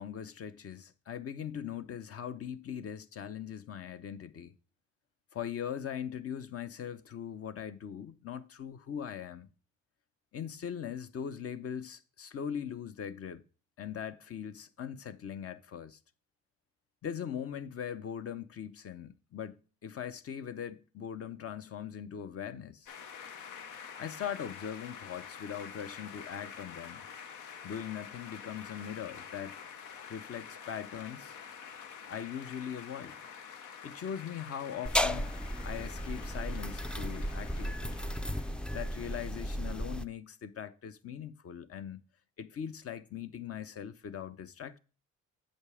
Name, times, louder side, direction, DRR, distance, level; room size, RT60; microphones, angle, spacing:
voice 1, 0.0-4.5 5.3-9.5 10.3-13.4 13.8-16.0 17.0-22.9 24.0-27.0 27.6-29.6 30.1-31.4 32.1-33.2 33.8-35.3 35.6-38.0 38.7-42.0 42.4-44.8, left 8 dB, 50° left, 0.7 m, -40 dB
sound 1, 22.9-39.5, left 7 dB, 85° left, 0.9 m, -48 dB
sound 2, 34.9-40.1, equal, 5° left, 0.3 m, -34 dB
7.6 x 5.2 x 4.8 m
cardioid pair, 90°, 30 cm